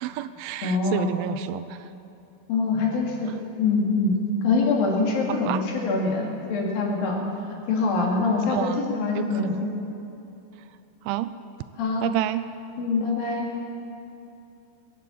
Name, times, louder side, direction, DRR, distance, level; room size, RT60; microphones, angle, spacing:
voice 1, 0.0-1.9 5.3-5.6 8.5-9.7 11.0-11.3 12.0-12.5, right 13 dB, 85° right, 13 dB, 2.3 m, -30 dB
voice 2, 0.6-1.1 2.5-3.3 3.6-4.1 4.4-7.2 7.7-9.7 11.8-12.0 12.8-13.5, left 3 dB, 70° left, -1 dB, 3.8 m, -24 dB
22.0 x 7.7 x 8.5 m, 2.8 s
omnidirectional pair, 4.4 m